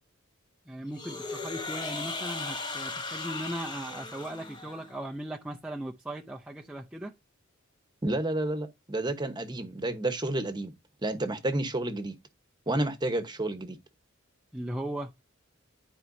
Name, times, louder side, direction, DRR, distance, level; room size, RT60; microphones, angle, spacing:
voice 1, 0.7-7.1 14.5-15.1, right 1 dB, 5° right, 0.5 m, -38 dB
sound 1, 0.9-5.0, left 3 dB, 20° left, 1.0 m, -37 dB
voice 2, 8.0-10.7 11.0-12.1 12.7-13.8, right 1 dB, 20° right, 1.1 m, -30 dB
12.5 x 4.5 x 2.7 m
head